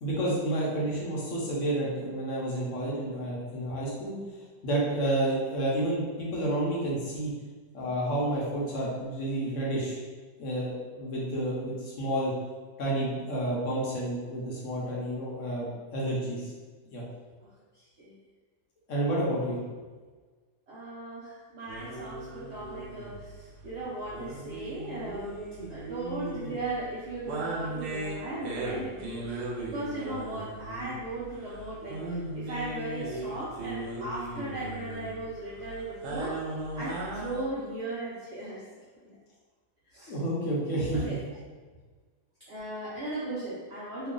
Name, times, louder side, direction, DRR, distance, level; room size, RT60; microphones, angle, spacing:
voice 1, 0.0-4.1 4.6-7.3 7.7-10.0 10.4-12.3 12.8-16.5 16.9-17.0 18.9-19.6 40.1-41.0, right 1 dB, 55° left, -5 dB, 1.1 m, -30 dB
voice 2, 17.4-18.2 19.2-19.4 20.7-25.4 25.7-36.4 36.7-38.7 39.0-39.2 39.9-40.2 40.9-41.3 42.4-44.1, right 2 dB, 55° right, -9 dB, 0.8 m, -37 dB
sound 1, 21.7-37.4, right 2 dB, 80° right, 1.3 m, -38 dB
3.0 x 2.3 x 3.7 m, 1.4 s
omnidirectional pair, 1.7 m